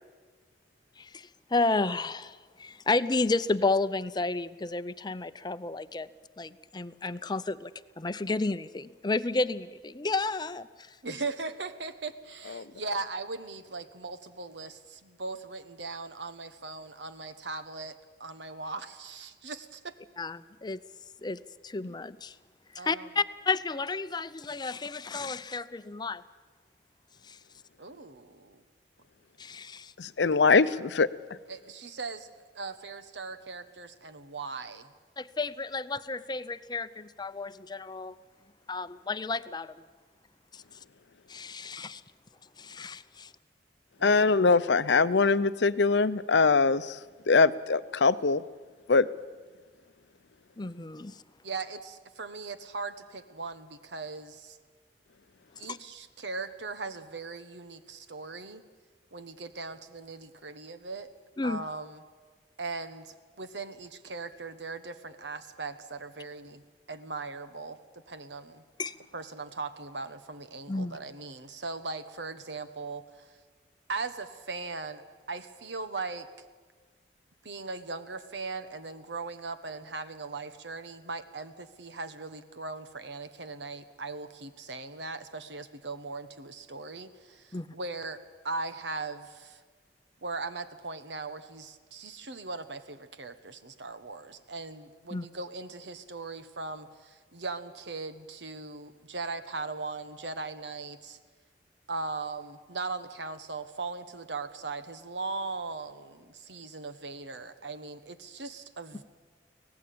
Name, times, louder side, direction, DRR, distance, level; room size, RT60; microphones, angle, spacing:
voice 1, 1.0-6.1 6.4-7.7 8.0-11.0 20.2-20.8 21.2-22.4 22.7-26.2 27.2-27.4 29.4-29.9 35.2-38.2 38.7-39.7 40.5-40.6 41.3-42.0 42.6-43.3 50.6-51.2 55.7-55.8 61.4-61.6 68.8-68.9 70.7-71.0 87.5-87.7 95.1-95.3, left 3 dB, 25° left, 14 dB, 0.6 m, -32 dB
voice 2, 11.0-17.9 18.2-19.9 22.8-23.1 27.8-28.6 31.5-34.9 44.0-44.4 51.4-54.6 55.6-58.6 59.1-61.1 61.4-62.0 62.6-66.6 66.9-67.8 68.1-68.6 69.1-73.0 73.9-75.0 75.3-76.3 77.4-89.6 90.2-101.2 101.9-109.0, right 3 dB, 80° right, 11 dB, 1.4 m, -39 dB
voice 3, 30.0-31.1 44.0-47.0 47.3-48.4 48.9-49.1, left 4 dB, 80° left, 15 dB, 0.7 m, -22 dB
24.5 x 18.0 x 8.7 m, 1.4 s
head